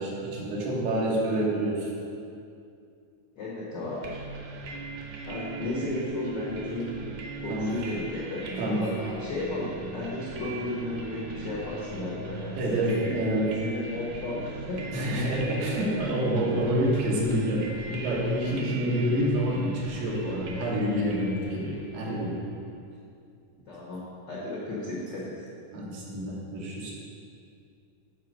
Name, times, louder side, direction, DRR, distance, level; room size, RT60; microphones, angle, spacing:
voice 1, 0.0-1.9 7.5-7.7 8.6-8.8 12.6-13.5 14.9-22.3 25.7-26.9, right 1 dB, 90° right, -4 dB, 3.0 m, -27 dB
voice 2, 3.3-4.2 5.2-7.0 7.4-13.2 13.6-16.2 23.7-25.4, left 2 dB, 75° left, -7 dB, 1.0 m, -34 dB
sound 1, 4.0-22.7, right 3 dB, 70° right, 2.0 m, -39 dB
7.6 x 4.3 x 6.2 m, 2.4 s
omnidirectional pair, 3.8 m